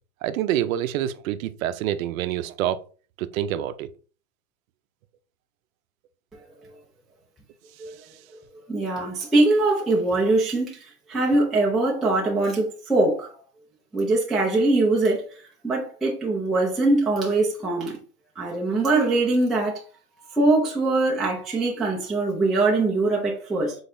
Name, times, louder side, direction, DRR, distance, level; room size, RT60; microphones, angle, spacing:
voice 1, 0.2-2.8 3.2-3.9, right 11 dB, 60° right, 0.6 m, -26 dB
voice 2, 8.7-10.8 11.1-13.3 13.9-15.2 15.6-18.0 18.4-19.8 20.4-23.8, right 2 dB, ahead, 0.3 m, -22 dB
5.2 x 3.9 x 2.6 m
hypercardioid pair, 125°, 46 cm